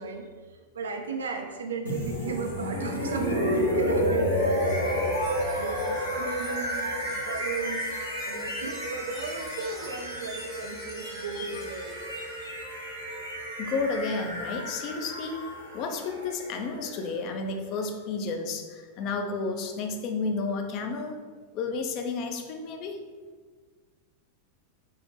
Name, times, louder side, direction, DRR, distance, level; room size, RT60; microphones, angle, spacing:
voice 1, 0.0-12.0, right 4 dB, 70° right, 3 dB, 0.3 m, -35 dB
sound 1, 1.8-17.7, equal, 85° left, 1.4 m, -31 dB
Wind chime, 4.4-12.6, right 3 dB, 35° right, 0.7 m, -49 dB
voice 2, 13.6-15.5 15.7-21.2 21.5-23.0, left 4 dB, 40° left, 4 dB, 0.3 m, -31 dB
3.4 x 2.1 x 3.0 m, 1.5 s
figure-of-eight pair, 90°, 0 cm